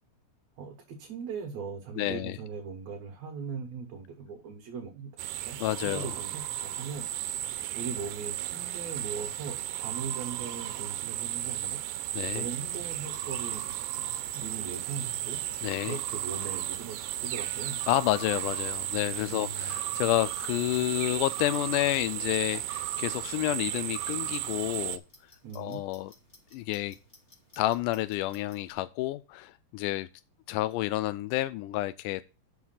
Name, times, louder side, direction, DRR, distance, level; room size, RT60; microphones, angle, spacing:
voice 1, 0.6-5.1 5.4-7.1 7.7-11.8 12.3-13.6 14.0-15.4 15.9-17.8 19.2-19.8 25.4-25.8, right 5 dB, 65° right, 2.4 m, -40 dB
voice 2, 2.0-2.4 5.6-6.1 12.1-12.5 15.6-16.0 17.9-25.0 25.6-26.1 26.5-27.0 27.6-30.1 30.5-32.2, left 16 dB, 85° left, 2.1 m, -30 dB
sound 1, 5.2-25.0, right 13 dB, 85° right, 2.2 m, -34 dB
Clock, 12.2-28.7, left 1 dB, 20° left, 2.5 m, -59 dB
7.0 x 6.4 x 5.7 m
omnidirectional pair, 3.7 m